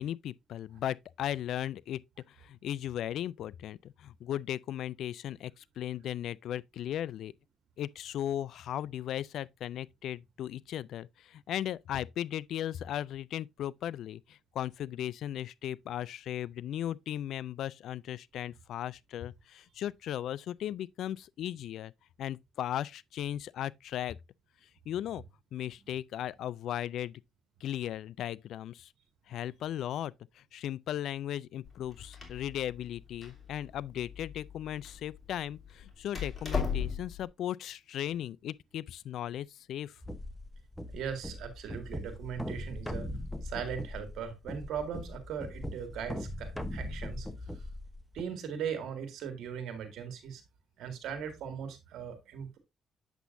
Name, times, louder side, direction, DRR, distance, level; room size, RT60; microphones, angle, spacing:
voice 1, 0.0-2.0 2.3-7.3 7.8-21.9 22.2-24.2 24.9-25.2 25.5-27.2 27.6-28.9 29.3-40.0, left 11 dB, 75° left, 0.3 m, -37 dB
Door, 31.6-37.2, left 6 dB, 30° left, 2.8 m, -38 dB
sound 1, 40.0-48.2, left 1 dB, 5° left, 0.9 m, -40 dB
voice 2, 40.9-43.1 43.4-47.3 48.1-50.4 50.8-52.6, right 7 dB, 80° right, 1.9 m, -39 dB
8.2 x 7.0 x 2.6 m
cardioid pair, 90°, 0 cm